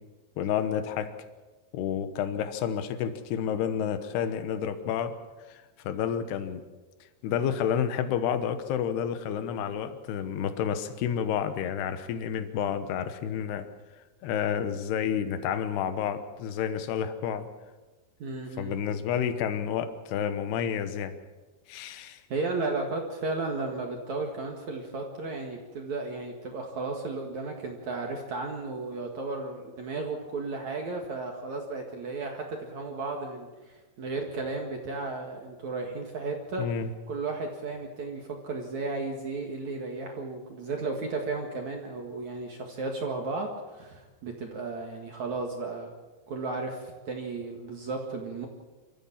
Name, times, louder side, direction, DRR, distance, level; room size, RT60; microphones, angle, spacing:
voice 1, 0.4-1.1 1.7-5.2 5.5-6.6 7.2-13.7 14.2-17.5 18.6-21.1 21.7-22.2 36.6-36.9, left 8 dB, 70° left, 10 dB, 2.8 m, -30 dB
voice 2, 18.2-18.8 22.3-36.7 37.1-45.9 46.3-48.5, right 3 dB, 55° right, 1 dB, 2.2 m, -34 dB
27.0 x 14.5 x 7.4 m, 1.2 s
omnidirectional pair, 5.8 m